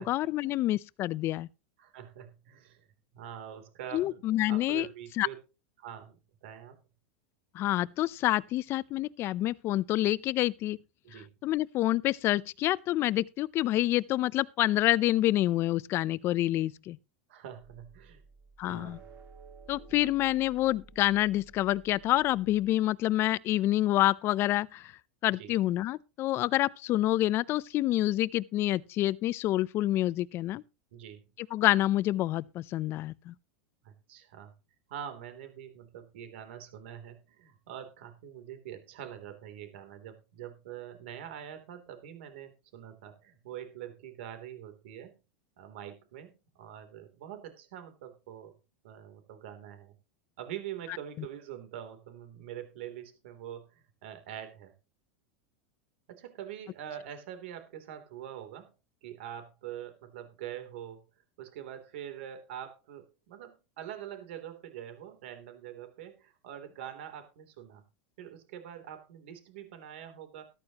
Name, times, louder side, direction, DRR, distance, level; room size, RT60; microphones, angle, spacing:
voice 1, 0.0-1.5 3.9-4.9 5.2-5.3 7.5-10.8 11.4-17.0 18.6-19.0 19.7-24.9 25.2-30.6 31.5-33.3, left 15 dB, 40° left, 0.6 m, -27 dB
voice 2, 1.8-2.9 3.1-4.2 4.5-5.4 5.8-6.2 6.4-6.8 11.0-11.3 17.3-18.2 18.6-19.1 19.9-20.1 25.4-25.5 30.9-31.2 33.8-34.5 34.9-45.1 45.6-48.5 48.8-49.9 50.4-54.7 56.1-58.7 59.0-61.0 61.4-67.8 68.2-70.4, right 10 dB, 75° right, 3.2 m, -44 dB
sound 1, 17.6-22.7, right 4 dB, 40° right, 4.7 m, -54 dB
13.5 x 13.5 x 3.0 m
supercardioid pair, 125°, 6 cm